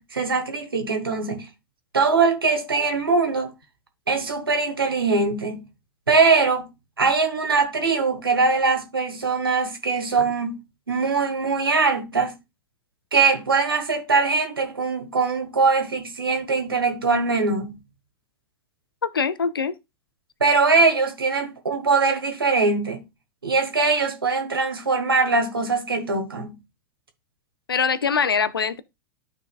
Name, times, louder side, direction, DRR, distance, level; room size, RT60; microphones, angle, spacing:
voice 1, 0.0-1.5 1.9-3.5 4.1-5.6 6.1-6.7 7.0-10.6 10.9-12.4 13.1-17.8 20.4-23.0 23.4-26.6, right 4 dB, 90° right, 1.4 m, -22 dB
voice 2, 19.0-19.8 27.7-28.8, left 6 dB, 90° left, 0.5 m, -23 dB
12.0 x 4.2 x 2.4 m
hypercardioid pair, 95°, 12 cm